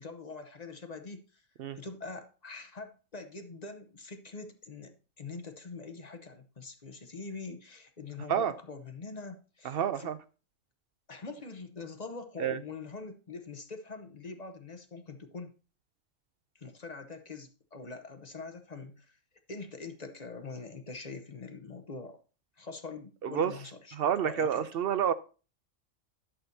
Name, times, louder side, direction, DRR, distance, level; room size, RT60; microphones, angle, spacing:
voice 1, 0.0-1.4 1.7-10.1 11.1-15.5 16.5-19.2 19.5-22.2 22.6-24.8, left 4 dB, 35° left, 0.8 m, -44 dB
voice 2, 9.6-10.2 12.4-12.6 23.2-23.5 23.9-25.1, right 8 dB, 65° right, 0.6 m, -29 dB
11.0 x 6.7 x 2.7 m
omnidirectional pair, 1.3 m